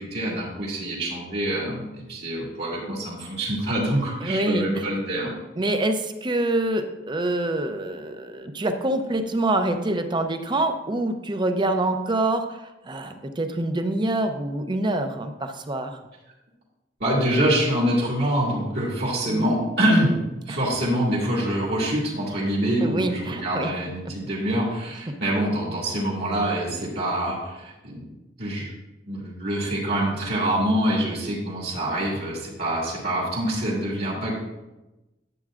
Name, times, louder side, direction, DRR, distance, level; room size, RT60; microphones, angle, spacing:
voice 1, 0.0-5.3 17.0-20.1 20.5-28.0 28.4-28.7 29.1-34.3, right 1 dB, 65° right, -6 dB, 2.4 m, -25 dB
voice 2, 4.2-4.9 5.6-16.0 20.5-20.6 22.8-23.7, right 2 dB, 25° right, 7 dB, 0.6 m, -26 dB
10.5 x 7.6 x 2.5 m, 1.0 s
head